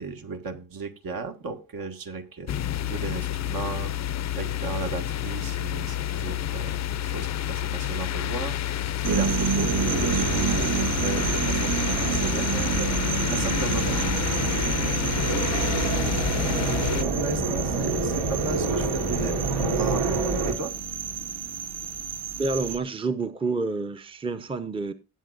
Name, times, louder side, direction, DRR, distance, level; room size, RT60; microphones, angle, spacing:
voice 1, 0.0-2.6 2.8-6.8 7.0-12.9 13.3-14.0 14.3-14.4 14.7-15.0 15.3-16.3 16.9-20.2 20.4-20.7, right 4 dB, 65° right, 1.8 m, -35 dB
sound 1, 2.5-17.0, left 11 dB, 50° left, 0.5 m, -29 dB
sound 2, 9.0-22.8, right 7 dB, 45° right, 0.9 m, -30 dB
sound 3, 9.6-20.5, right 3 dB, 85° right, 3.4 m, -29 dB
voice 2, 22.4-24.9, right 3 dB, 15° right, 0.7 m, -28 dB
18.5 x 7.6 x 2.5 m
cardioid pair, 140°, 37 cm